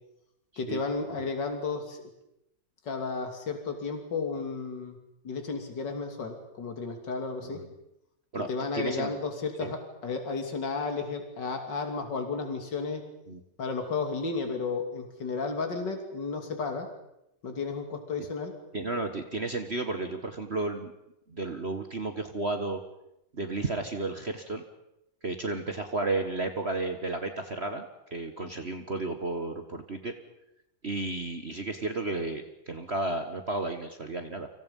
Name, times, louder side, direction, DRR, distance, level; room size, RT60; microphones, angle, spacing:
voice 1, 0.6-2.0 2.8-5.0 5.2-7.6 8.5-13.0 13.6-16.9 17.4-18.5, left 4 dB, 65° left, 5 dB, 3.5 m, -33 dB
voice 2, 8.7-9.1 9.6-9.7 13.3-13.4 18.7-20.9 21.3-22.8 23.3-24.6 25.2-30.1 30.8-34.5, right 2 dB, 35° right, 6 dB, 1.7 m, -33 dB
30.0 x 26.0 x 5.5 m, 0.85 s
omnidirectional pair, 2.0 m